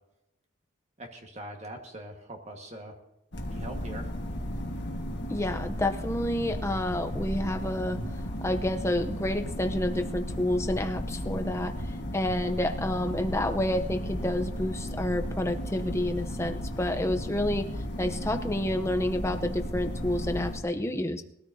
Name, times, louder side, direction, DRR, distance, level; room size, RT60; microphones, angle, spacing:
voice 1, 1.0-2.9 3.5-4.1, right 1 dB, 35° right, 3 dB, 1.6 m, -42 dB
sound 1, 3.3-20.6, equal, 60° left, 1.6 m, -34 dB
voice 2, 5.3-8.0 8.4-17.7 18.0-21.2, left 1 dB, 15° left, 7 dB, 0.7 m, -29 dB
21.0 x 13.5 x 2.7 m, 0.87 s
head